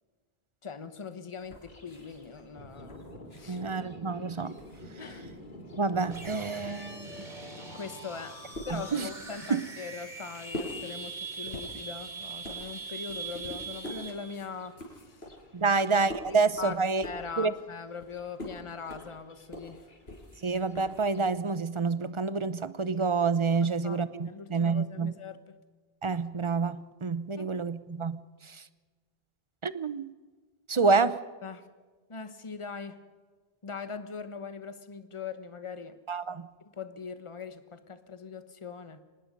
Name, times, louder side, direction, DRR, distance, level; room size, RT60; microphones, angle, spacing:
voice 1, 0.6-3.1 3.3-3.6 5.0-5.3 7.7-8.4 8.6-15.3 15.6-15.8 16.3-19.9 23.6-25.6 27.4-27.6 31.4-31.7 32.1-33.0 33.6-36.0 36.6-39.0, left 5 dB, 30° left, 10 dB, 1.2 m, -41 dB
sound 1, 1.4-5.6 5.9-21.3, left 1 dB, 80° left, 6.0 m, -46 dB
Thunder, 1.7-21.2, left 1 dB, 50° left, 2.7 m, -52 dB
voice 2, 3.5-4.5 5.8-7.1 8.7-9.1 9.5-9.6 15.5-17.0 17.4-17.5 20.4-25.1 26.0-28.2 28.5-28.6 29.6-30.1 30.7-31.2 36.1-36.5, right 4 dB, 30° right, 14 dB, 0.7 m, -28 dB
sound 2, 6.1-14.4, right 4 dB, 45° right, 3.3 m, -42 dB
25.0 x 20.0 x 5.4 m, 1.4 s
omnidirectional pair, 1.0 m